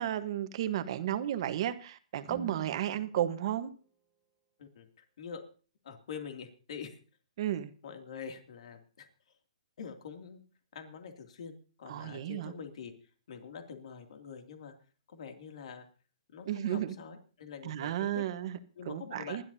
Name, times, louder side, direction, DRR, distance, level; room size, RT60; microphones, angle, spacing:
voice 1, 0.0-3.7 7.4-7.7 11.9-12.5 16.5-16.9 17.6-18.6 18.9-19.4, right 11 dB, 45° right, 1.2 m, -33 dB
Guitar, 2.2-4.8, right 7 dB, 10° right, 2.1 m, -51 dB
voice 2, 4.6-5.5 5.8-7.0 7.8-9.1 9.8-10.4 10.7-12.9 13.3-14.7 15.1-15.9 16.3-18.2 18.7-19.4, left 6 dB, 60° left, 2.6 m, -45 dB
27.0 x 12.0 x 2.8 m
hypercardioid pair, 165°, 4 cm